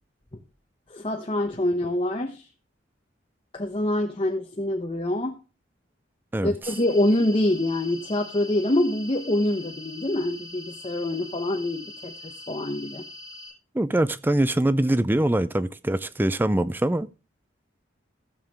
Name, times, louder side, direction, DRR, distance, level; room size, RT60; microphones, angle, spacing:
voice 1, 0.9-2.5 3.5-5.4 6.4-13.1, left 1 dB, 30° left, 0.9 m, -25 dB
sound 1, 6.6-13.5, left 2 dB, 50° right, 7.9 m, -43 dB
voice 2, 13.7-17.1, right 1 dB, 10° right, 0.4 m, -23 dB
15.5 x 7.2 x 3.5 m
head